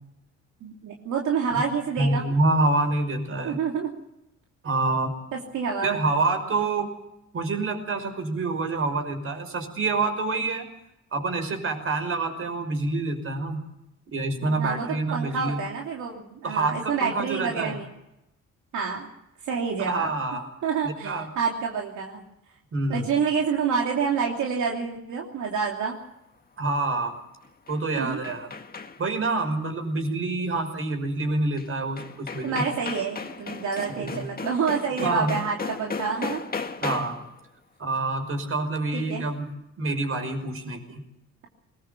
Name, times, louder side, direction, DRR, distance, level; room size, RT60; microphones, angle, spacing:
voice 1, 0.6-2.2 3.4-3.9 5.3-5.9 14.5-17.9 18.7-19.1 19.4-20.1 20.6-22.2 22.9-26.0 28.0-28.2 32.4-36.4 38.9-39.3, right 6 dB, 75° right, -1 dB, 3.0 m, -28 dB
voice 2, 2.0-3.6 4.6-5.1 5.8-6.9 7.3-10.7 11.1-13.6 14.1-15.6 16.4-17.8 19.9-20.4 20.8-21.3 22.7-23.1 26.6-27.2 27.7-28.5 29.0-32.6 34.0-34.2 35.0-35.4 36.8-37.2 37.8-41.0, right 2 dB, 45° right, 6 dB, 5.6 m, -27 dB
sound 1, 27.4-29.2 31.6-31.7 32.0-37.3, left 4 dB, 30° left, 1.8 m, -36 dB
21.0 x 20.5 x 7.1 m, 0.86 s
cardioid pair, 90°, 30 cm